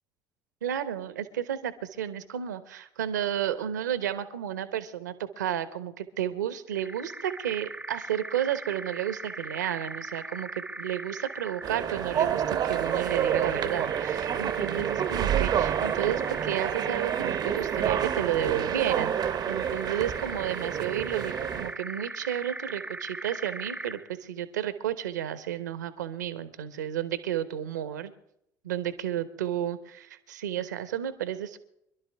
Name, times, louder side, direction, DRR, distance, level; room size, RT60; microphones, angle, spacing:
voice 1, 0.6-28.1 28.6-31.6, right 10 dB, 80° right, 13 dB, 1.1 m, -32 dB
sound 1, 6.7-24.1, right 2 dB, 10° right, 0.6 m, -39 dB
sound 2, 11.6-21.8, right 9 dB, 45° right, 0.8 m, -29 dB
26.0 x 12.0 x 3.5 m, 0.77 s
figure-of-eight pair, 55°, 10 cm